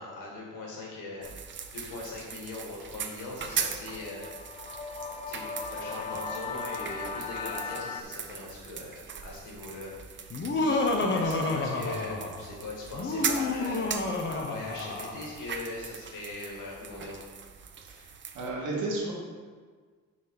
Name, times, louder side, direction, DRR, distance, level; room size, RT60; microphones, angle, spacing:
voice 1, 0.0-1.3 1.7-4.3 5.3-13.9 14.2-17.2, left 2 dB, 85° left, -2 dB, 1.8 m, -40 dB
sound 1, 1.2-18.5, right 6 dB, 40° right, 0.6 m, -40 dB
sound 2, 3.8-8.0, left 5 dB, 20° left, 0.5 m, -38 dB
Laughter, 10.3-12.5 12.9-15.3, left 2 dB, 40° left, 0.8 m, -29 dB
voice 2, 18.3-19.1, right 2 dB, 80° right, -3 dB, 1.8 m, -32 dB
5.8 x 4.1 x 4.7 m, 1.5 s
cardioid pair, 90°, 30 cm